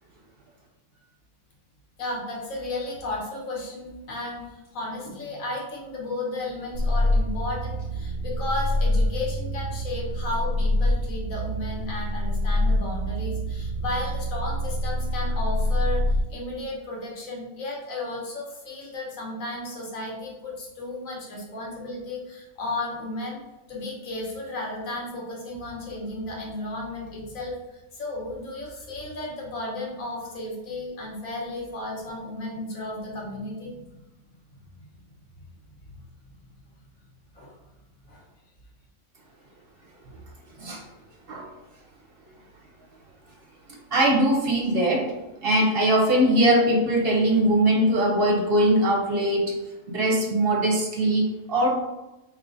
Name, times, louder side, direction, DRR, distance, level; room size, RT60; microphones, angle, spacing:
voice 1, 2.0-16.0 16.3-23.4 23.7-33.8 37.3-37.5 38.1-38.2, left 2 dB, 90° left, -2 dB, 1.5 m, -34 dB
sound 1, 6.7-16.2, left 1 dB, 60° left, 0.9 m, -26 dB
voice 2, 43.7-45.1 45.4-49.6 49.9-51.7, right 1 dB, 55° right, 0 dB, 0.8 m, -21 dB
4.8 x 3.0 x 2.6 m, 1.0 s
omnidirectional pair, 1.4 m